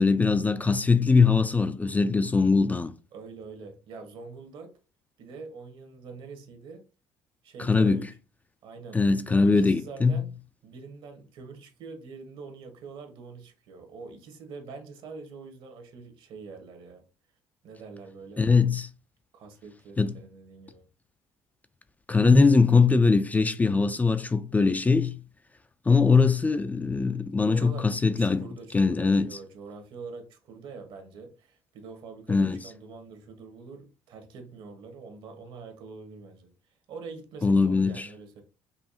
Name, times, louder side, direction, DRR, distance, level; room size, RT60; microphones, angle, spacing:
voice 1, 0.0-2.9 7.6-8.1 8.9-10.1 18.4-18.9 20.0-20.2 22.1-25.2 25.9-28.4 28.7-29.4 32.3-32.6 37.4-38.1, left 4 dB, 15° left, 0.3 m, -21 dB
voice 2, 3.1-4.7 5.2-6.8 7.4-8.1 8.6-9.0 9.3-10.3 10.6-17.1 17.6-18.5 19.3-20.9 27.5-38.4, right 4 dB, 65° right, 1.2 m, -44 dB
5.5 x 2.3 x 2.8 m
supercardioid pair, 90°, 9 cm